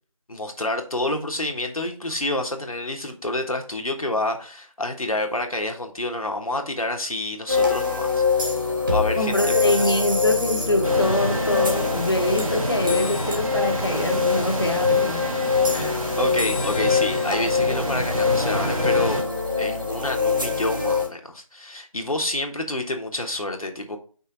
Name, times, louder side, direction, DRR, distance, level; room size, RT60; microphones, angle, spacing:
voice 1, 0.3-8.2 8.5-10.0 15.7-19.2 19.6-24.0, left 1 dB, 80° left, 1.4 m, -28 dB
sound 1, 7.5-21.1, left 4 dB, 35° right, 1.6 m, -24 dB
voice 2, 9.1-15.3, left 1 dB, 45° left, 0.9 m, -24 dB
sound 2, 10.8-19.2, right 1 dB, 70° right, 1.9 m, -29 dB
5.5 x 3.5 x 4.9 m
figure-of-eight pair, 170°, 18 cm